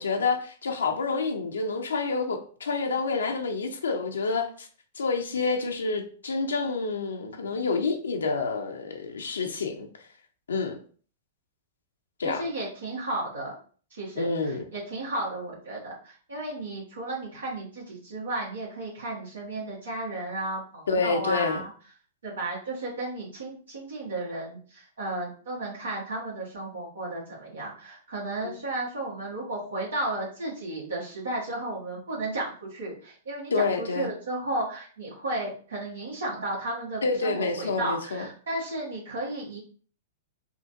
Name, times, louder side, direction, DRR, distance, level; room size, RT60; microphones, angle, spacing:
voice 1, 0.0-4.7 4.9-9.9 10.5-10.8 12.2-12.4 14.2-14.6 20.9-21.6 28.4-28.5 33.5-34.1 37.0-38.2, left 4 dB, 85° left, 0.5 m, -28 dB
voice 2, 12.2-13.5 13.9-21.7 22.2-39.6, right 2 dB, 85° right, 1.4 m, -33 dB
3.8 x 2.5 x 2.5 m
hypercardioid pair, 115°, 0 cm